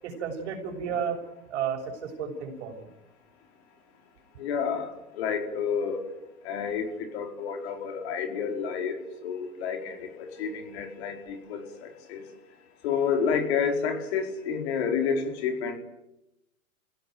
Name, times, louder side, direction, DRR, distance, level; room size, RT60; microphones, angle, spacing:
voice 1, 0.0-1.2 1.5-2.8, right 7 dB, 50° right, 4 dB, 6.7 m, -32 dB
voice 2, 4.4-6.0 6.4-12.6 12.8-15.8, left 6 dB, 45° left, 4 dB, 4.7 m, -30 dB
29.5 x 16.5 x 9.3 m, 0.92 s
hypercardioid pair, 130°, 43 cm